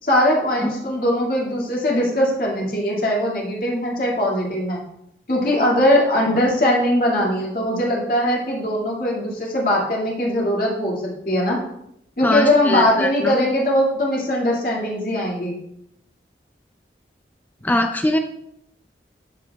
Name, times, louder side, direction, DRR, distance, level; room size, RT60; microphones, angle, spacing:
voice 1, 0.0-4.8 5.3-11.0 11.3-11.6 12.2-15.5, left 1 dB, 50° left, -3 dB, 2.1 m, -20 dB
voice 2, 12.2-13.4 17.6-18.2, left 1 dB, 10° left, 6 dB, 0.4 m, -22 dB
14.0 x 4.9 x 2.3 m, 0.75 s
head